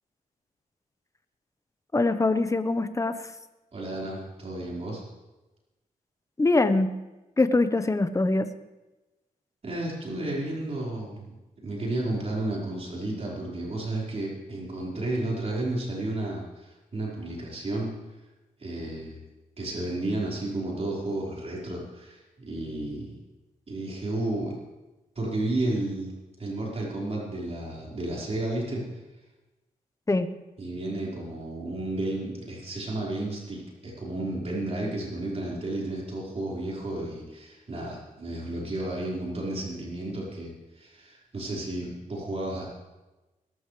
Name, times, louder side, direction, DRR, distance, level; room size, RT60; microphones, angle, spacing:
voice 1, 1.9-3.2 6.4-6.9 7.4-8.5 30.1-30.3, left 2 dB, 20° left, 10 dB, 1.1 m, -23 dB
voice 2, 3.7-5.0 9.6-11.3 11.6-17.9 18.6-19.2 19.6-23.2 23.7-24.6 25.1-28.8 30.6-42.7, right 2 dB, 45° right, -4 dB, 4.9 m, -32 dB
22.0 x 13.0 x 3.4 m, 1.1 s
cardioid pair, 65°, 15 cm